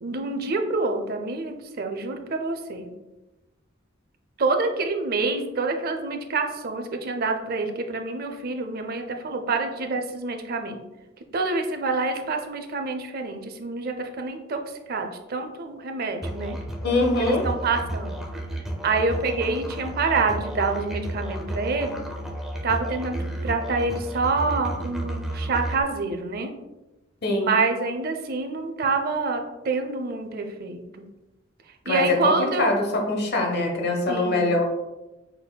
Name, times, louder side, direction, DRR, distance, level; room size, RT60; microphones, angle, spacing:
voice 1, 0.0-2.9 4.4-10.8 11.3-14.6 14.9-16.6 17.3-18.2 18.8-22.0 22.6-26.5 27.4-30.8 31.9-32.7 34.1-34.5, right 3 dB, 50° right, 5 dB, 0.5 m, -27 dB
Musical instrument, 16.2-25.8, right 1 dB, ahead, 0.5 m, -32 dB
voice 2, 16.8-17.5 27.2-27.5 31.8-32.3 32.6-34.6, left 2 dB, 55° left, 2 dB, 1.0 m, -23 dB
5.4 x 4.1 x 2.2 m, 1.0 s
head